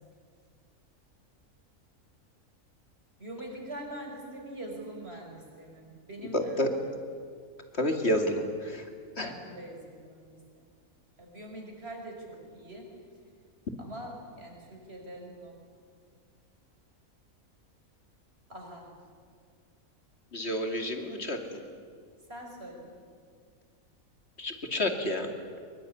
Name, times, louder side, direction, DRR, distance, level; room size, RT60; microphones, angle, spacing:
voice 1, 3.2-6.7 9.2-10.7 11.2-12.9 13.8-15.5 18.5-18.9 22.3-22.9, right 1 dB, 45° right, 1 dB, 5.6 m, -43 dB
voice 2, 6.3-6.7 7.8-8.8 9.2-9.3 20.3-21.6 24.4-25.3, left 1 dB, 50° left, 5 dB, 2.7 m, -29 dB
23.0 x 22.5 x 9.8 m, 2.1 s
omnidirectional pair, 1.4 m